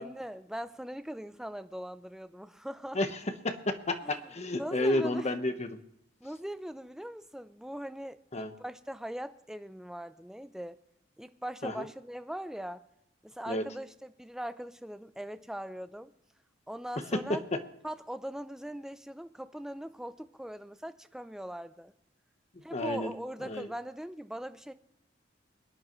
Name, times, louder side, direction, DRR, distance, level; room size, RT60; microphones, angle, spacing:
voice 1, 0.0-3.0 4.0-4.2 4.5-5.3 6.2-10.8 11.2-12.8 13.2-16.1 16.7-17.4 17.8-21.9 22.6-24.7, equal, 5° right, 11 dB, 0.5 m, -40 dB
voice 2, 3.4-5.8 8.3-8.5 11.6-11.9 13.5-13.6 17.1-17.2 17.5-17.6 22.7-23.1 23.4-23.7, left 1 dB, 35° left, 8 dB, 1.1 m, -31 dB
23.0 x 10.0 x 3.1 m, 0.79 s
head